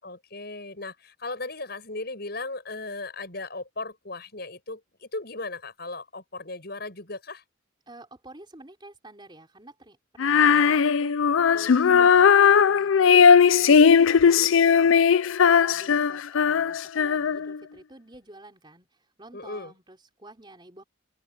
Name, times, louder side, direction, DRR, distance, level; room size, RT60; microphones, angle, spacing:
voice 1, 0.0-7.4 19.3-19.7, left 2 dB, 50° left, 7.4 m, -37 dB
voice 2, 7.9-13.3 13.6-15.1 15.6-20.8, right 1 dB, 25° right, 4.2 m, -49 dB
Female singing, 10.2-17.6, left 6 dB, 80° left, 0.5 m, -18 dB
open air
head